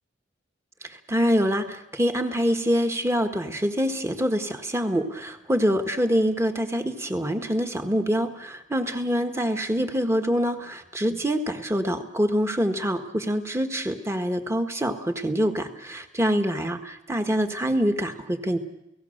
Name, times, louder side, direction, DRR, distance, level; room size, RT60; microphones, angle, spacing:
voice 1, 0.9-18.6, equal, 15° right, 6 dB, 1.5 m, -25 dB
29.5 x 17.5 x 6.6 m, 0.88 s
head